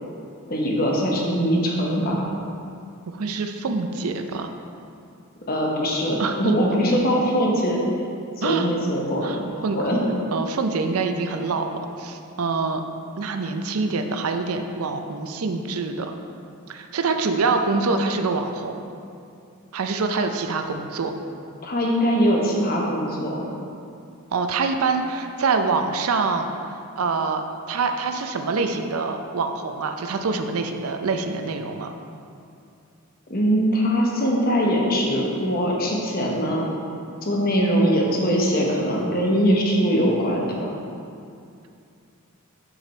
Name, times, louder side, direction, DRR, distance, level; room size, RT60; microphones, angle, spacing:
voice 1, 0.5-2.3 5.5-7.8 8.4-10.0 21.6-23.5 33.3-36.7 37.2-40.7, equal, 45° left, -2 dB, 1.0 m, -22 dB
voice 2, 3.1-4.5 6.2-6.6 8.4-8.7 9.2-9.8 10.3-11.7 12.0-12.8 13.2-16.1 16.7-18.9 19.7-21.1 24.3-26.5 27.0-31.9, right 4 dB, 80° right, 6 dB, 0.5 m, -25 dB
6.2 x 5.0 x 4.3 m, 2.5 s
head